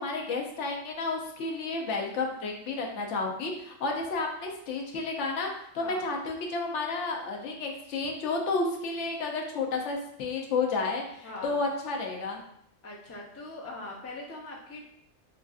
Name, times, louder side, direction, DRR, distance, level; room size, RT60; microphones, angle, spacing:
voice 1, 0.0-12.4, left 3 dB, 80° left, 1 dB, 1.0 m, -31 dB
voice 2, 5.8-6.1 11.2-11.6 12.8-14.8, left 2 dB, 20° left, -2 dB, 0.4 m, -41 dB
4.9 x 2.5 x 2.3 m, 0.71 s
omnidirectional pair, 1.2 m